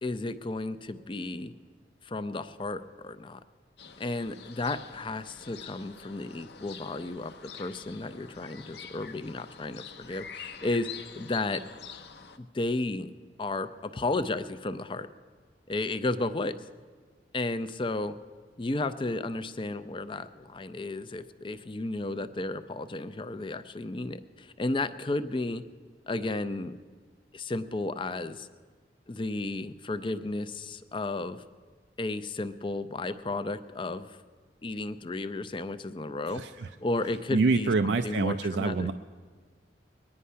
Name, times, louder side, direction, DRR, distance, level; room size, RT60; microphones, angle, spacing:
voice 1, 0.0-1.5 2.0-3.4 4.0-7.3 7.6-11.6 12.4-13.1 13.4-15.1 15.7-16.6 17.3-18.1 18.6-25.6 26.1-26.7 27.3-28.5 29.1-31.4 32.0-34.2 34.6-36.4 36.8-38.9, left 2 dB, 30° left, 12 dB, 0.5 m, -33 dB
sound 1, 3.8-12.4, left 6 dB, 65° left, 0.8 m, -46 dB
voice 2, 36.3-36.7 37.3-38.9, right 3 dB, 75° right, 8 dB, 0.4 m, -26 dB
21.5 x 9.8 x 5.6 m, 1.5 s
head